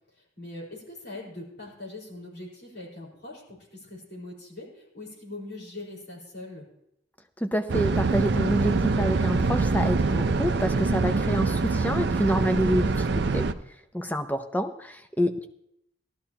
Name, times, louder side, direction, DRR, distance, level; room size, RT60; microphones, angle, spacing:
voice 1, 0.2-6.6, left 2 dB, 60° left, -4 dB, 4.8 m, -42 dB
voice 2, 7.4-13.1 13.3-13.5 13.9-15.5, equal, 10° left, 7 dB, 0.6 m, -27 dB
sound 1, 7.7-13.5, right 3 dB, 60° right, 0.5 m, -24 dB
16.5 x 12.5 x 2.9 m, 0.77 s
head